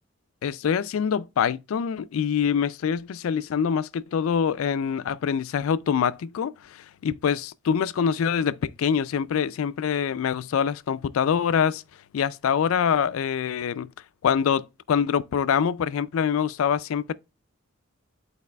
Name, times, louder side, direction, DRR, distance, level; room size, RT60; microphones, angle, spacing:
voice 1, 0.4-11.8 12.1-13.9 14.2-17.1, left 7 dB, 75° left, 0.3 m, -25 dB
10.5 x 4.1 x 2.2 m
head